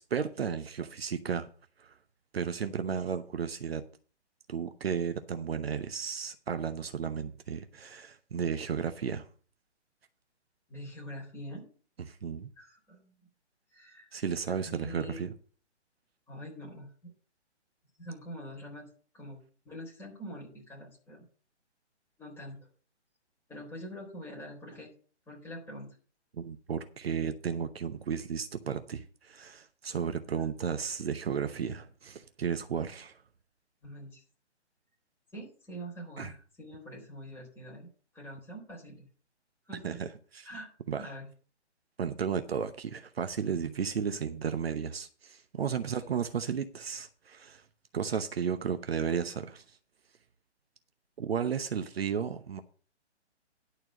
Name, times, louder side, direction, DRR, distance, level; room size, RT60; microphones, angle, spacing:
voice 1, 0.0-1.5 1.8-1.9 2.3-3.8 4.5-9.3 12.1-12.5 14.1-15.3 26.3-33.2 36.2-36.3 39.8-40.5 40.9-41.1 42.0-47.6 47.9-49.8 51.2-52.6, right 7 dB, 60° right, 0.9 m, -34 dB
voice 2, 10.7-11.7 12.6-13.1 13.7-14.1 14.5-15.3 16.3-17.1 18.0-18.9 19.1-21.3 22.2-22.6 23.5-24.9 25.3-25.9 33.8-34.2 35.3-37.9 38.1-39.1 39.7-40.0 40.4-40.7 41.0-41.3 45.8-45.9, equal, 5° left, 3.8 m, -44 dB
11.0 x 4.5 x 7.4 m
figure-of-eight pair, 140°, 35 cm